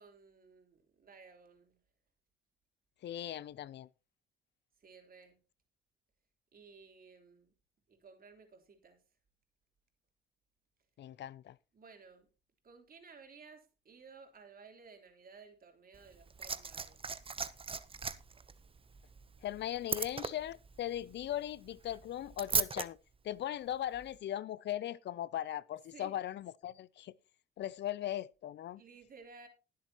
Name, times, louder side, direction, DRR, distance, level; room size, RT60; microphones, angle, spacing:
voice 1, 0.0-1.8 4.8-5.4 6.5-7.5 7.9-9.0 11.7-12.3 12.6-17.0 25.9-26.2 28.8-29.5, right 5 dB, 45° right, 3.5 m, -56 dB
voice 2, 3.0-3.9 11.0-11.6 19.4-23.0 23.2-27.1 27.6-28.8, left 12 dB, 60° left, 0.5 m, -39 dB
Liquid, 15.9-22.9 23.9-24.1, right 5 dB, 25° right, 0.8 m, -38 dB
20.0 x 7.5 x 2.9 m
cardioid pair, 90°, 20 cm